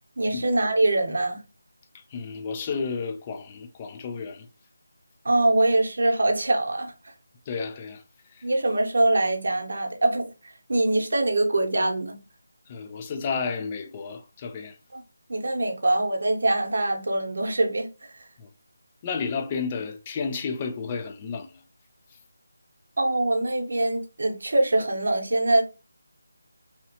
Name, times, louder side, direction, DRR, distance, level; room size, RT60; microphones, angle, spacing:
voice 1, 0.2-1.4 5.2-6.9 8.4-10.3 10.7-12.2 14.9-15.0 15.3-18.1 23.0-25.6, right 2 dB, 65° right, 0.8 m, -23 dB
voice 2, 2.1-4.5 7.5-8.0 12.7-14.8 18.4-18.5 19.0-21.5, left 5 dB, 20° left, 0.3 m, -32 dB
2.9 x 2.8 x 2.7 m
figure-of-eight pair, 165°, 0 cm